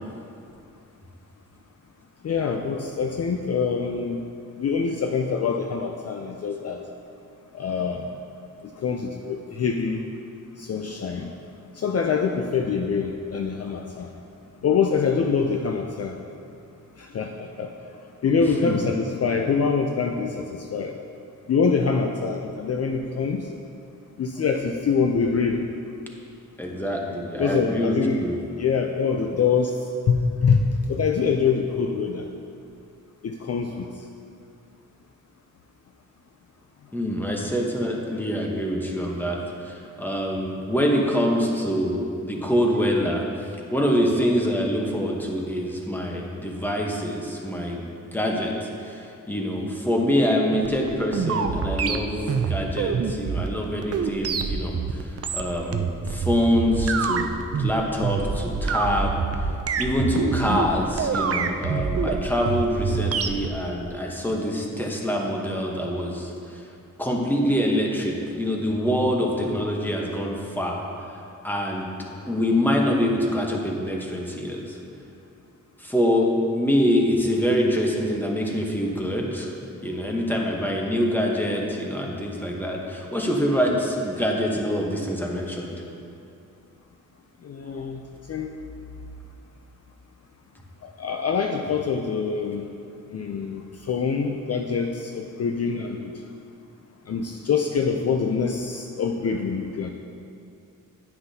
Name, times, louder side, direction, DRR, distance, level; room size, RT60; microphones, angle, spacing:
voice 1, 2.2-4.2 4.6-6.8 7.5-8.1 8.6-10.1 10.6-11.3 11.7-14.1 14.6-16.2 17.0-17.7 18.2-20.9 21.5-23.5 24.2-25.7 27.4-28.2 28.6-32.3 33.2-34.1 87.4-88.0 88.3-88.5 90.8-92.7 93.1-96.1 97.1-99.9, left 5 dB, 50° left, 3 dB, 0.5 m, -25 dB
voice 2, 26.6-27.9 28.2-28.4 36.9-43.2 43.7-47.8 48.1-54.8 55.3-55.8 56.1-57.3 57.6-59.2 59.8-66.3 67.0-70.8 71.4-71.9 72.3-74.8 75.8-79.5 79.8-85.7, equal, 5° left, -1 dB, 1.0 m, -25 dB
sound 1, 50.6-63.5, right 5 dB, 45° right, 0.5 m, -26 dB
9.9 x 9.5 x 2.8 m, 2.5 s
wide cardioid pair, 140°, 33 cm